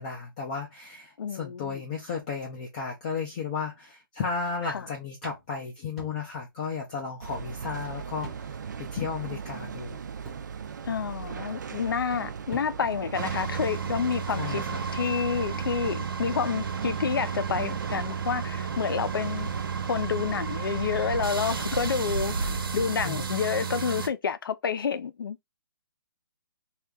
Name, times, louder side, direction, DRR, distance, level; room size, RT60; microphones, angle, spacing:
voice 1, 0.0-8.6 8.9-10.0 14.4-14.8 23.0-23.3, left 5 dB, 20° left, 0.4 m, -34 dB
voice 2, 1.2-1.8 4.6-4.9 10.8-14.6 14.9-19.5 19.9-25.4, left 6 dB, 70° left, 0.5 m, -29 dB
sound 1, 5.2-6.6 6.9-7.0 8.2-8.8 9.2-9.3 10.2-11.0 12.2-12.3 12.5-13.1, right 2 dB, ahead, 0.8 m, -46 dB
sound 2, 7.2-22.6, right 7 dB, 55° right, 0.4 m, -38 dB
sound 3, 13.1-24.1, right 6 dB, 75° right, 0.9 m, -32 dB
2.8 x 2.4 x 3.4 m
hypercardioid pair, 170°, 12 cm